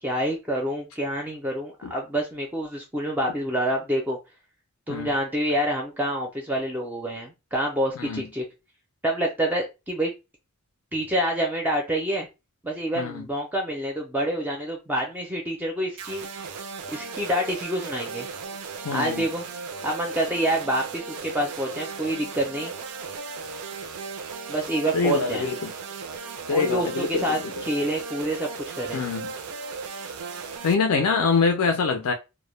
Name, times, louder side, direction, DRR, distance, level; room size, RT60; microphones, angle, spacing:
voice 1, 0.0-4.2 4.9-8.4 9.0-10.1 10.9-12.3 12.6-16.5 16.9-18.3 18.9-19.4 19.8-22.7 24.5-25.5 26.5-28.5 28.8-29.0, right 1 dB, 10° right, 0.4 m, -27 dB
voice 2, 8.0-8.3 13.0-13.3 18.8-19.2 24.9-25.7 26.5-27.4 28.9-29.3 30.6-32.1, left 5 dB, 80° left, 0.4 m, -24 dB
sound 1, 16.0-30.7, right 5 dB, 90° right, 0.4 m, -36 dB
2.1 x 2.0 x 3.0 m
head